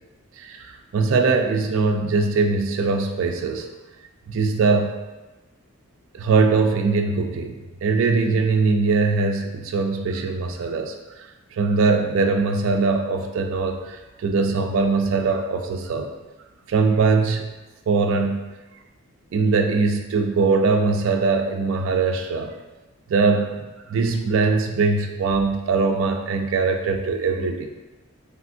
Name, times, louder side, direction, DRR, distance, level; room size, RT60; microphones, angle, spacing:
voice 1, 0.4-3.6 4.3-5.0 6.1-10.9 11.6-16.1 16.7-17.5 17.9-18.4 19.3-22.5 23.1-23.6 23.9-27.7, right 4 dB, 65° right, 4 dB, 0.3 m, -21 dB
3.3 x 2.5 x 2.6 m, 1.1 s
head